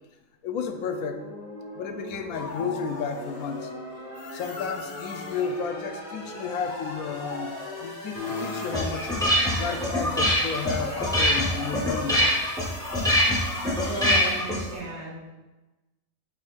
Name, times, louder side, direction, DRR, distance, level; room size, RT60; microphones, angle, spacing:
voice 1, 0.4-1.2 1.7-3.7 4.3-7.5 7.8-9.1 9.6-12.4, left 6 dB, 90° left, 7 dB, 1.1 m, -32 dB
sound 1, 0.7-14.8, left 1 dB, 35° left, 2.1 m, -41 dB
sound 2, 2.3-3.7 4.1-5.6 6.1-14.3, left 4 dB, 60° left, 0.8 m, -41 dB
sound 3, 8.2-14.8, left 1 dB, 5° left, 1.0 m, -24 dB
voice 2, 13.9-15.3, right 1 dB, 80° right, -6 dB, 2.6 m, -34 dB
11.0 x 4.0 x 2.5 m, 1.1 s
omnidirectional pair, 1.4 m